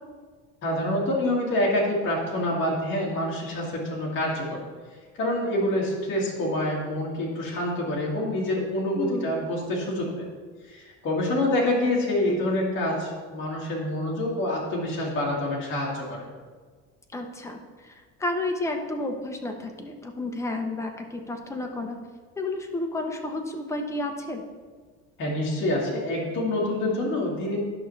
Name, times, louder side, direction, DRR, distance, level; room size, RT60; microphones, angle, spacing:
voice 1, 0.6-4.6 5.2-10.3 10.7-16.3 25.2-27.6, left 1 dB, 35° left, -4 dB, 2.1 m, -26 dB
voice 2, 9.0-9.3 17.1-17.9 18.2-22.0 22.4-24.4, left 2 dB, 10° left, 3 dB, 0.6 m, -31 dB
11.0 x 5.9 x 3.2 m, 1.5 s
cardioid pair, 155°, 32 cm